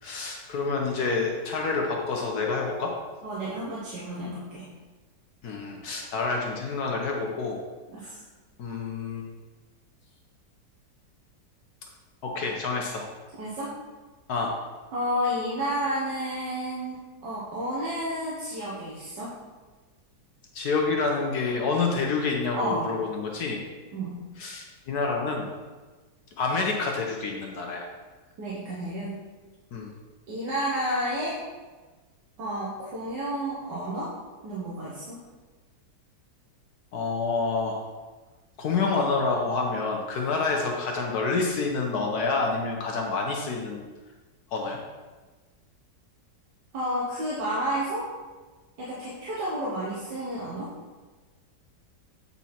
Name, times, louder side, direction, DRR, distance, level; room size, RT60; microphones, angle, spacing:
voice 1, 0.0-2.9 5.4-7.6 8.0-8.1 8.6-9.3 12.2-13.0 14.3-14.6 20.5-23.6 24.4-25.5 26.4-27.9 29.7-29.9 36.9-37.8 38.6-43.8 44.5-44.8, left 4 dB, 65° left, 0 dB, 1.3 m, -28 dB
voice 2, 3.2-4.7 7.9-8.2 13.4-13.7 14.9-19.3 22.6-22.9 23.9-24.2 28.4-29.2 30.3-31.4 32.4-34.1 34.4-35.2 46.7-48.1 48.8-50.7, equal, 80° right, -7 dB, 1.9 m, -31 dB
8.2 x 4.4 x 4.3 m, 1.3 s
omnidirectional pair, 1.9 m